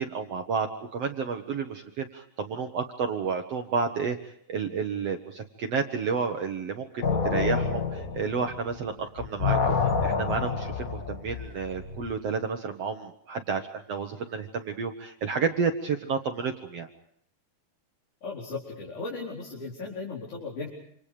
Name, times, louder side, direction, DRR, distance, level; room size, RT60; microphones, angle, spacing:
voice 1, 0.0-16.9, right 5 dB, 60° right, 5 dB, 1.7 m, -31 dB
sound 1, 7.0-8.9 9.2-12.1, left 5 dB, 75° left, 0.7 m, -28 dB
voice 2, 18.2-20.7, left 3 dB, 50° left, -4 dB, 5.9 m, -36 dB
27.5 x 27.5 x 5.1 m, 0.67 s
omnidirectional pair, 4.4 m